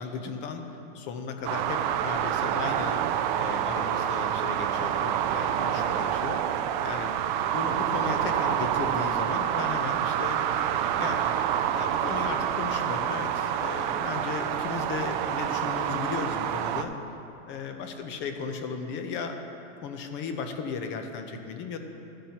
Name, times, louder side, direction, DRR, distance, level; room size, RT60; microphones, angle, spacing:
voice 1, 0.0-3.0 3.3-6.6 6.8-7.2 7.5-10.4 11.0-16.9 17.5-19.4 19.8-21.8, left 5 dB, 30° left, 6 dB, 0.7 m, -36 dB
sound 1, 1.4-16.8, right 10 dB, 40° right, 0.4 m, -27 dB
13.5 x 10.0 x 2.9 m, 2.9 s
hypercardioid pair, 135°, 40 cm